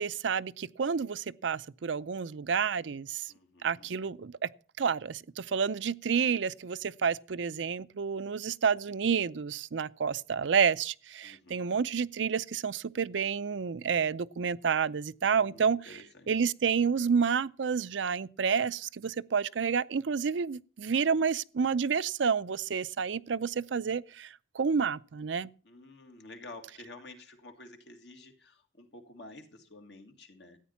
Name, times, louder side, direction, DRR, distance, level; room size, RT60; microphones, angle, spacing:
voice 1, 0.0-3.3 3.6-4.5 4.8-15.8 16.3-25.5, right 6 dB, 80° right, 0.5 m, -29 dB
voice 2, 3.3-4.0 11.2-11.7 15.2-16.5 25.6-30.6, left 2 dB, 65° left, 2.2 m, -51 dB
14.0 x 9.2 x 5.8 m
head